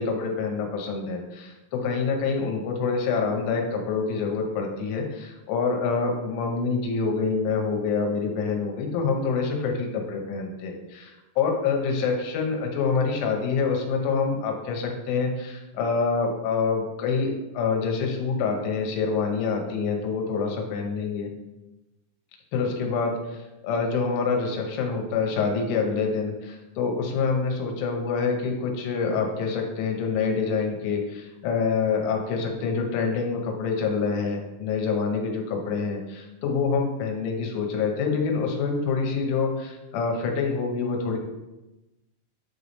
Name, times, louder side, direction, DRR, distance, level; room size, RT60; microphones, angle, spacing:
voice 1, 0.0-21.3 22.5-41.2, left 5 dB, 80° left, 2 dB, 3.4 m, -26 dB
10.5 x 3.5 x 4.1 m, 1.0 s
omnidirectional pair, 5.6 m